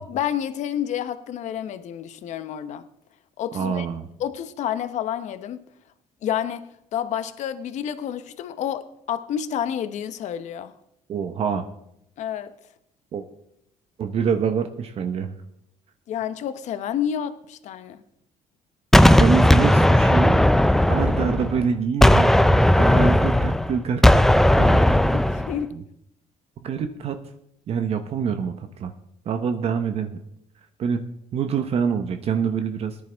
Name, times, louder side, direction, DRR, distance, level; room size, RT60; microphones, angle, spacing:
voice 1, 0.0-2.9 3.4-3.9 4.2-5.7 6.2-6.6 6.9-10.7 12.2-12.5 16.1-18.0 25.1-25.7, left 9 dB, 65° left, 12 dB, 0.8 m, -29 dB
voice 2, 3.5-4.1 11.1-11.7 13.1-13.2 14.0-15.4 19.2-20.4 20.9-22.3 22.8-24.0 24.3-24.9 25.7-25.8 26.6-27.2 27.7-28.9 29.2-30.2 30.8-31.0 31.3-33.0, right 6 dB, 50° right, 8 dB, 0.9 m, -25 dB
Gunshot gunfire, 18.9-21.6 22.0-25.6, left 1 dB, 5° left, 0.4 m, -16 dB
18.0 x 10.5 x 3.5 m, 0.77 s
cardioid pair, 120°, 13 cm